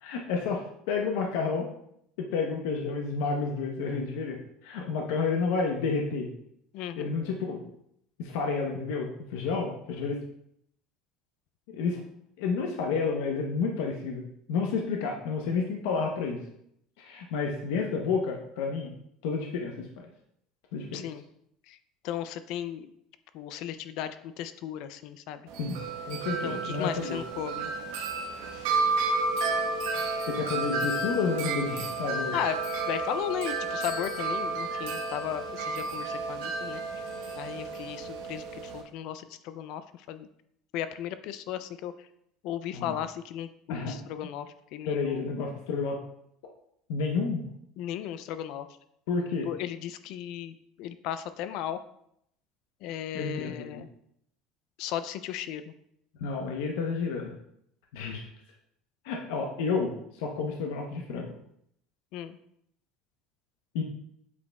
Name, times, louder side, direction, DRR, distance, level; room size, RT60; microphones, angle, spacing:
voice 1, 0.0-1.7 2.2-6.3 7.0-7.7 8.2-10.2 11.7-12.0 12.4-16.4 17.0-19.0 19.2-20.1 20.7-21.0 25.6-25.8 26.0-27.2 30.3-32.4 42.7-43.0 43.7-43.9 44.9-46.0 46.9-47.4 49.1-49.5 53.1-53.8 56.2-57.3 57.9-58.3 59.0-61.3 63.7-63.8, left 4 dB, 80° left, 1 dB, 0.8 m, -30 dB
voice 2, 6.7-7.1 20.9-21.2 21.7-21.8 22.0-22.9 23.3-25.5 26.4-27.7 32.3-32.6 32.9-36.8 37.4-40.3 40.7-42.1 42.4-45.3 47.8-48.7 49.4-51.8 52.8-53.9 54.8-55.7 62.1-62.4, left 10 dB, 50° left, 12 dB, 0.3 m, -36 dB
Wind chime, 25.5-38.8, right 3 dB, 85° right, 1.1 m, -32 dB
8.2 x 5.1 x 2.3 m, 0.73 s
cardioid pair, 180°, 0 cm